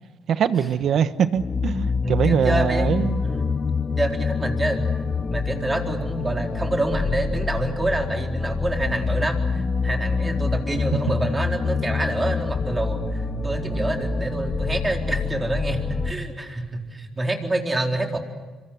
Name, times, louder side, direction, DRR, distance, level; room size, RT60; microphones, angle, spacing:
voice 1, 0.3-3.2, right 8 dB, 65° right, 13 dB, 1.2 m, -22 dB
sound 1, 1.4-16.1, left 4 dB, 40° left, 1.9 m, -26 dB
voice 2, 2.0-3.6 4.0-4.9 5.3-18.2, right 1 dB, 20° right, 3 dB, 4.0 m, -27 dB
26.0 x 24.0 x 8.0 m, 1.3 s
cardioid pair, 85°, 0 cm